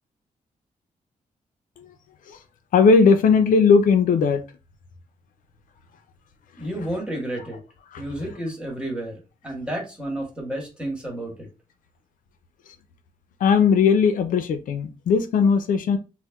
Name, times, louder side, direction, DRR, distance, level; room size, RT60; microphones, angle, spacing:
voice 1, 2.7-4.4 7.9-8.0 13.4-16.0, left 5 dB, 80° left, 0.4 m, -18 dB
voice 2, 6.6-7.6 8.0-9.2 9.4-11.5, right 1 dB, 5° right, 1.4 m, -31 dB
4.0 x 2.1 x 2.2 m
cardioid pair, 90°, 14 cm